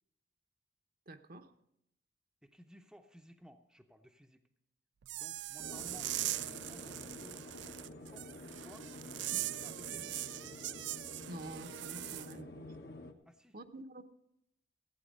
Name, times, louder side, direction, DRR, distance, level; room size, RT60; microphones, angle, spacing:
voice 1, 1.1-1.5 11.3-12.7 13.5-14.0, right 2 dB, 50° right, 7 dB, 0.9 m, -48 dB
voice 2, 2.4-4.4 5.1-10.5 13.3-13.6, equal, 5° right, 4 dB, 0.7 m, -58 dB
sound 1, 5.0-12.3, right 15 dB, 75° right, 0.4 m, -41 dB
sound 2, 5.6-13.1, left 2 dB, 60° left, 1.3 m, -49 dB
15.0 x 9.1 x 5.3 m, 0.79 s
head